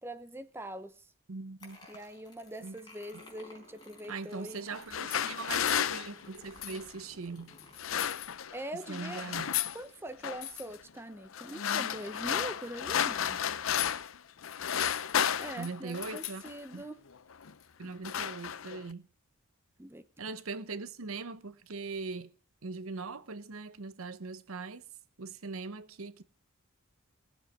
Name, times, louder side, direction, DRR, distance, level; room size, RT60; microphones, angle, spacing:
voice 1, 0.0-1.1 1.9-4.7 8.5-9.3 9.7-13.4 15.4-17.1 19.8-20.0, right 1 dB, 10° right, 0.8 m, -43 dB
voice 2, 1.3-1.8 2.6-2.8 4.1-7.6 8.7-9.5 15.6-16.4 16.7-16.8 17.8-19.0 20.2-22.3 22.6-24.8 25.2-26.2, right 4 dB, 80° right, 0.9 m, -40 dB
sound 1, 1.6-10.8, left 2 dB, 20° left, 4.8 m, -57 dB
sound 2, 4.7-6.9 7.6-8.6 8.9-9.8 10.2-10.6 11.3-14.2 14.4-16.5 17.3-17.5 17.8-18.9, left 9 dB, 70° left, 0.6 m, -33 dB
18.5 x 7.6 x 7.3 m
head